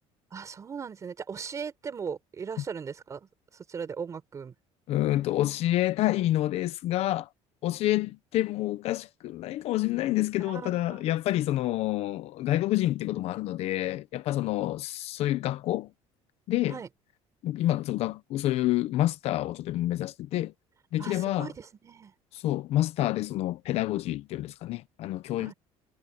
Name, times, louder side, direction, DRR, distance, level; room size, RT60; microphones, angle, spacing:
voice 1, 0.3-3.2 3.7-4.5 10.5-11.0 16.7-16.9 21.0-22.1 25.4-25.5, right 6 dB, 25° right, 5.3 m, -38 dB
voice 2, 4.9-7.3 7.6-15.9 16.5-16.8 17.4-20.5 20.9-21.5 22.3-25.5, left 15 dB, 55° left, 0.8 m, -28 dB
cardioid pair, 160°, 12 cm